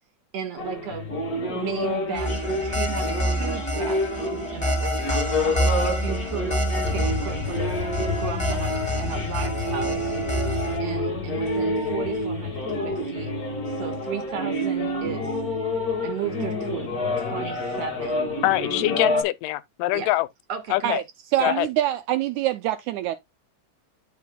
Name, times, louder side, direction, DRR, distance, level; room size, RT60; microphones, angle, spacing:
voice 1, 0.3-1.1 1.5-5.3 5.7-7.8 8.2-10.1 10.8-13.4 13.7-15.4 16.0-16.9 17.2-18.3 19.9-20.1 20.5-21.0 21.5-21.6, right 7 dB, 55° right, 2.5 m, -35 dB
sound 1, 0.6-19.2, left 1 dB, 30° left, 1.9 m, -28 dB
sound 2, 2.1-10.8, equal, 15° left, 1.2 m, -28 dB
sound 3, 6.8-13.0, left 9 dB, 50° left, 1.4 m, -33 dB
voice 2, 18.4-20.3 20.7-21.0 21.4-21.7, left 17 dB, 85° left, 2.2 m, -24 dB
voice 3, 21.3-23.2, right 13 dB, 80° right, 1.7 m, -25 dB
12.0 x 5.0 x 2.2 m
omnidirectional pair, 3.8 m